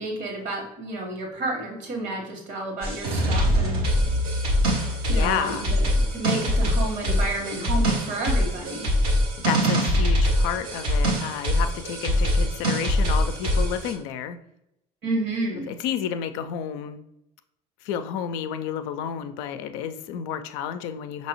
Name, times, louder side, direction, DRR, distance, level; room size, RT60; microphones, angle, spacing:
voice 1, 0.0-3.8 5.1-8.9 15.0-15.7, right 2 dB, 65° right, 1 dB, 1.6 m, -30 dB
sound 1, 2.8-13.9, equal, 85° right, 1.1 m, -23 dB
voice 2, 5.1-5.7 9.4-14.4 15.7-17.0 17.8-21.3, left 8 dB, 70° left, 9 dB, 0.4 m, -31 dB
5.3 x 2.8 x 2.9 m, 0.83 s
hypercardioid pair, 60°, 20 cm